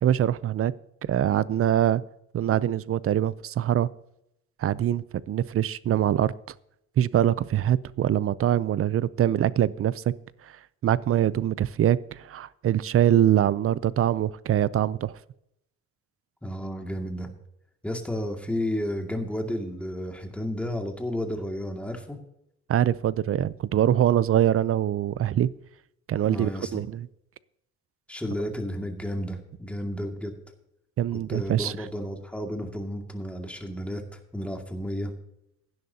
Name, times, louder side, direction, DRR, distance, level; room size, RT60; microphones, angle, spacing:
voice 1, 0.0-0.7 1.0-2.0 2.3-3.9 4.6-6.3 7.0-10.0 10.8-15.1 22.7-25.5 26.1-27.1 31.0-31.7, right 11 dB, 50° right, 19 dB, 0.5 m, -23 dB
voice 2, 16.4-17.3 17.8-22.2 26.3-26.7 28.1-30.3 31.1-35.1, equal, 5° left, 2 dB, 2.2 m, -32 dB
16.0 x 10.5 x 2.8 m, 0.80 s
cardioid pair, 90°, 30 cm